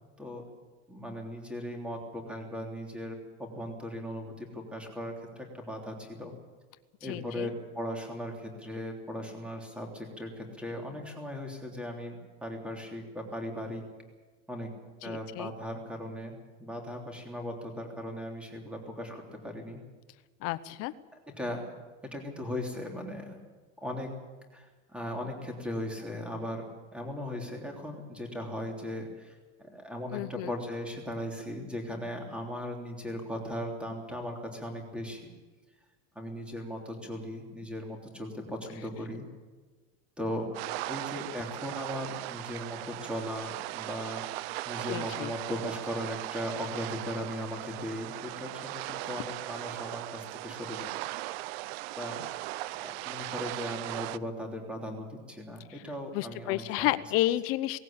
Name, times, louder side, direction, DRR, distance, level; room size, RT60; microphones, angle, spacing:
voice 1, 0.9-6.3 7.0-13.8 14.5-14.7 15.0-19.8 21.4-21.6 22.0-23.4 23.8-24.1 24.5-26.6 26.9-35.3 36.1-39.3 40.2-50.8 52.0-52.2 52.8-56.9, equal, 5° right, 2 dB, 3.3 m, -38 dB
voice 2, 7.0-7.5 15.0-15.5 20.4-20.9 30.1-30.5 44.9-45.3 55.7-55.8 56.1-57.8, left 16 dB, 45° left, 14 dB, 0.9 m, -31 dB
sound 1, 40.5-54.2, right 18 dB, 65° right, 0.7 m, -38 dB
19.0 x 17.0 x 8.7 m, 1.3 s
supercardioid pair, 165°, 33 cm